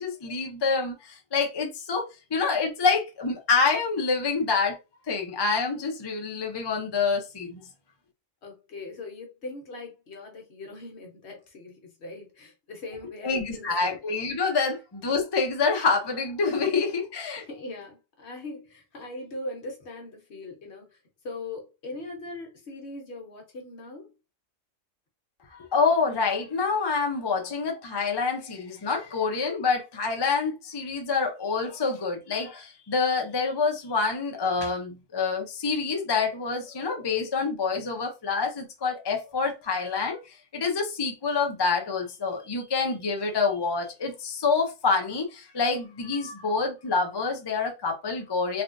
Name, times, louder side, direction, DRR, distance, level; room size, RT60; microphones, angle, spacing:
voice 1, 0.0-2.0 2.3-4.8 5.1-7.6 13.2-17.5 25.5-48.6, left 4 dB, 30° left, 0.5 m, -27 dB
voice 2, 8.4-14.0 17.4-24.1, left 2 dB, 60° left, 1.2 m, -40 dB
3.4 x 2.3 x 2.5 m
omnidirectional pair, 1.3 m